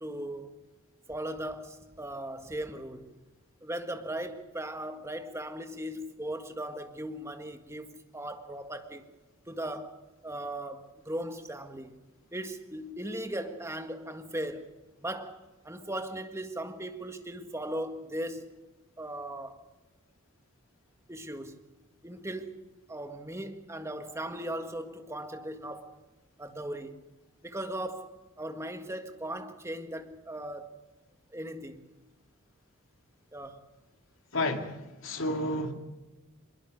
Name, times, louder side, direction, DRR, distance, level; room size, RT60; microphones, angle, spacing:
voice 1, 0.0-0.5 1.1-3.1 3.6-9.0 9.5-12.0 12.3-14.7 15.0-18.5 19.0-19.6 21.1-21.6 22.0-22.6 22.9-26.0 26.4-27.0 27.4-28.1 28.4-30.8 31.3-31.9 33.3-33.7, right 1 dB, 15° right, 1.8 m, -38 dB
voice 2, 34.3-35.7, left 1 dB, 65° left, 2.6 m, -31 dB
23.0 x 21.5 x 6.6 m
head